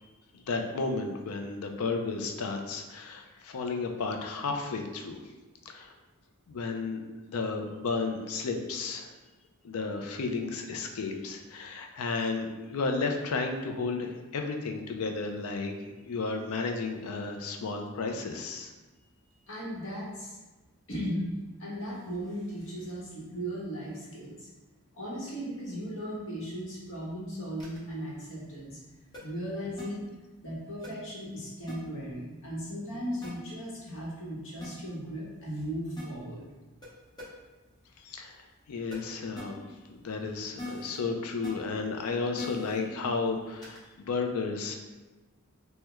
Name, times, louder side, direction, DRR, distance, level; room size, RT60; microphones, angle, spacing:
voice 1, 0.3-5.2 5.7-5.9 6.5-7.0 7.3-9.1 9.6-18.7 38.0-38.4 38.7-39.6 39.9-44.8, left 4 dB, 75° left, 4 dB, 0.4 m, -33 dB
voice 2, 19.5-20.4 20.9-21.2 21.6-24.5 24.9-28.8 29.2-30.0 30.4-36.4, equal, 60° left, -5 dB, 1.0 m, -37 dB
sound 1, 27.6-27.8 29.1-29.2 29.8-29.9 30.8-30.9 31.7-31.8 33.2-33.3 34.6-34.7 36.0-36.1 36.8-36.9 37.2-37.3 38.9-39.0 39.4-39.5 40.6-41.0 41.4-41.5 42.4-42.8 43.6-43.8, left 2 dB, 20° left, 0.7 m, -40 dB
3.4 x 2.1 x 3.0 m, 1.2 s
head